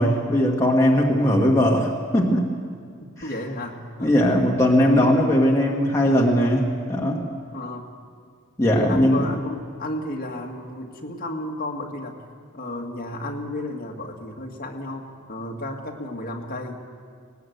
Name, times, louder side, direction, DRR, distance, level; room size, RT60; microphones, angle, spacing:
voice 1, 0.0-2.5 4.0-7.2 8.6-9.3, equal, 15° left, -2 dB, 1.7 m, -19 dB
voice 2, 3.2-4.1 7.5-7.8 8.6-12.2 12.5-16.9, left 1 dB, 45° left, 1 dB, 2.0 m, -33 dB
19.0 x 18.0 x 8.0 m, 2.1 s
head